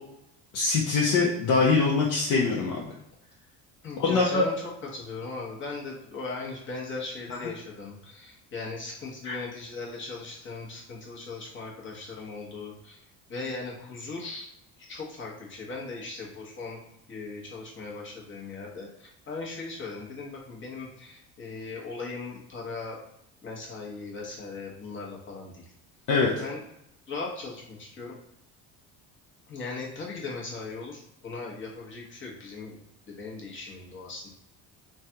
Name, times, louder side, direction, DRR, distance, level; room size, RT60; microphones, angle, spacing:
voice 1, 0.5-2.9 4.0-4.4 9.2-9.4 26.1-26.3, left 4 dB, 50° left, -3 dB, 0.6 m, -23 dB
voice 2, 3.8-4.5 4.9-13.0 13.3-14.5 14.9-16.8 17.1-23.0 23.4-25.6 26.4-26.6 27.1-28.2 29.5-34.3, left 3 dB, 30° left, -3 dB, 0.9 m, -38 dB
3.2 x 2.3 x 2.7 m, 0.81 s
cardioid pair, 110°, 38 cm